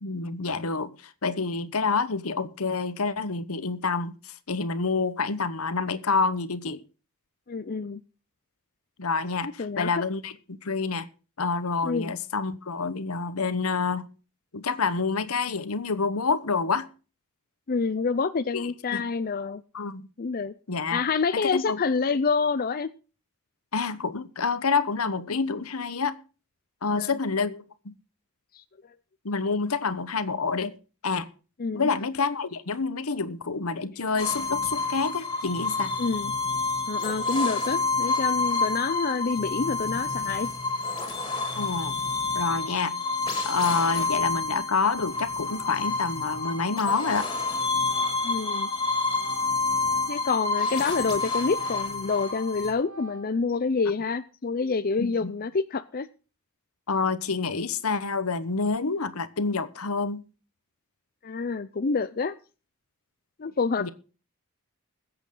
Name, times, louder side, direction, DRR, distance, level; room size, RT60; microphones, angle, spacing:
voice 1, 0.0-6.8 9.0-10.3 10.6-11.1 11.4-14.1 14.5-16.9 18.5-19.0 19.7-20.1 20.7-21.0 21.3-21.8 23.7-26.2 26.8-27.9 29.2-30.7 31.0-31.3 31.7-35.9 41.6-42.0 42.3-43.0 43.4-47.3 55.0-55.3 56.9-60.2 63.8-63.9, left 4 dB, 75° left, 1.1 m, -28 dB
voice 2, 7.5-8.0 9.4-9.9 11.8-12.1 17.7-19.6 20.2-20.5 20.9-22.9 26.9-27.2 28.5-28.6 31.6-31.9 36.0-36.3 36.9-40.5 48.2-48.7 50.1-56.1 61.2-62.3 63.4-63.9, left 4 dB, 40° left, 0.5 m, -27 dB
sound 1, 34.2-52.7, left 3 dB, 20° left, 3.4 m, -28 dB
Organ, 43.5-43.7 44.0-50.4 50.7-53.6, right 1 dB, 80° right, 5.8 m, -46 dB
21.0 x 8.1 x 3.8 m
head